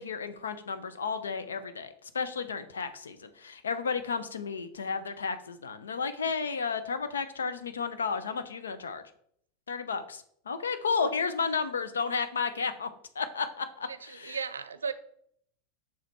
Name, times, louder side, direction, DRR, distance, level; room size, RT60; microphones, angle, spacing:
voice 1, 0.0-9.0 9.7-12.9 13.1-14.4, left 5 dB, 85° left, 10 dB, 0.6 m, -32 dB
voice 2, 13.8-14.9, right 6 dB, 85° right, 14 dB, 0.5 m, -36 dB
6.3 x 4.1 x 4.5 m, 0.64 s
hypercardioid pair, 90°, 0 cm